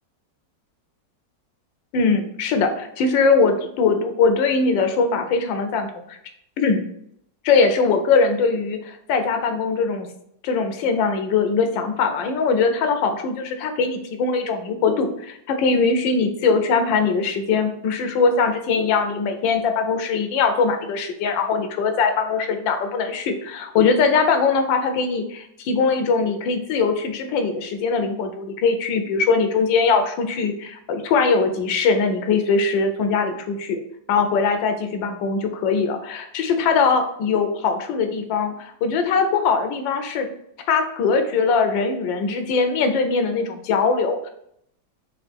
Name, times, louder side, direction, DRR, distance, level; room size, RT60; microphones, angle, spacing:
voice 1, 1.9-6.2 6.6-6.8 7.4-10.1 10.4-33.8 34.1-40.3 40.7-44.3, left 4 dB, 90° left, 6 dB, 1.4 m, -21 dB
5.3 x 2.5 x 3.3 m, 0.72 s
omnidirectional pair, 2.0 m